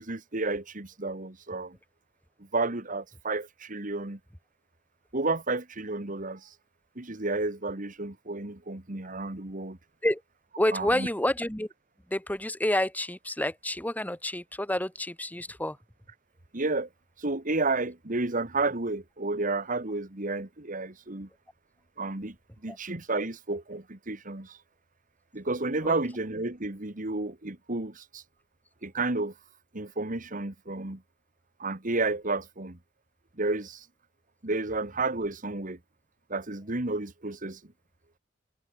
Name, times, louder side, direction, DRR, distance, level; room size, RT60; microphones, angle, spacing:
voice 1, 0.0-1.8 2.4-4.2 5.1-6.5 7.0-9.8 10.7-11.1 16.5-16.9 17.2-21.3 22.0-22.4 22.6-24.6 25.3-28.2 28.8-29.3 29.7-31.0 31.6-32.8 33.4-33.9 34.4-35.8 36.3-37.6, right 3 dB, 45° right, 2.0 m, -31 dB
voice 2, 10.6-11.7 12.1-15.8 22.7-22.8 25.8-25.9, left 1 dB, 10° left, 2.4 m, -29 dB
head